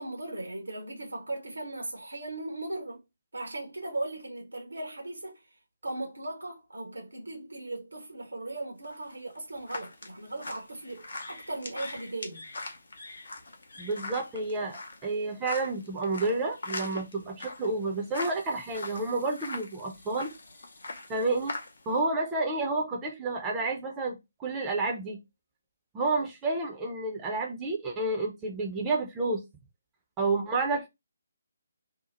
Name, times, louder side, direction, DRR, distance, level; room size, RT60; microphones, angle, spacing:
voice 1, 0.0-3.0 3.3-5.4 5.8-12.5, right 2 dB, 75° right, 0.9 m, -38 dB
sound 1, 8.8-22.0, left 2 dB, 55° left, 0.7 m, -42 dB
voice 2, 13.8-20.3 21.1-21.5 21.9-25.2 25.9-29.4 30.2-30.9, right 3 dB, 15° right, 0.6 m, -30 dB
2.8 x 2.0 x 4.0 m
figure-of-eight pair, 145°, 0 cm